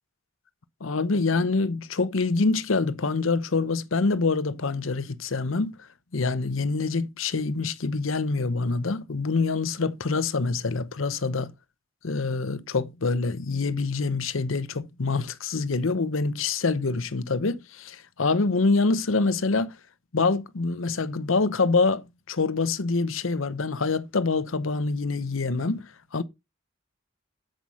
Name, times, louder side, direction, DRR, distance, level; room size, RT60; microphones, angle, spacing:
voice 1, 0.8-5.7 6.1-11.5 12.0-19.7 20.1-26.2, left 3 dB, 80° left, 0.8 m, -26 dB
8.4 x 7.7 x 4.9 m
head